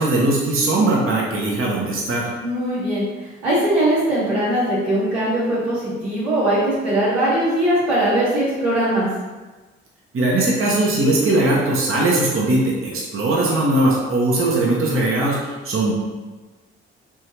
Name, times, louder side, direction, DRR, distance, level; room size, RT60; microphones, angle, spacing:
voice 1, 0.0-2.3 10.1-15.9, right 2 dB, 45° right, -4 dB, 1.0 m, -19 dB
voice 2, 2.4-3.0 3.4-9.1, right 1 dB, 90° right, -11 dB, 1.5 m, -20 dB
3.5 x 3.1 x 2.9 m, 1.2 s
hypercardioid pair, 45°, 30 cm